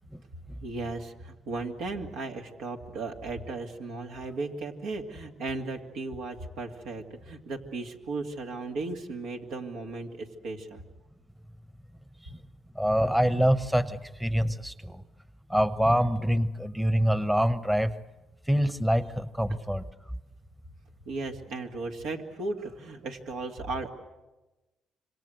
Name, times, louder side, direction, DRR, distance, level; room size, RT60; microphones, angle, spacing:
voice 1, 0.6-10.8 21.1-23.9, right 3 dB, 85° right, 3 dB, 2.4 m, -36 dB
voice 2, 12.8-15.0 15.5-17.9 18.5-19.8, equal, 10° right, 13 dB, 1.0 m, -25 dB
26.5 x 25.0 x 8.0 m, 1.1 s
cardioid pair, 90°, 0 cm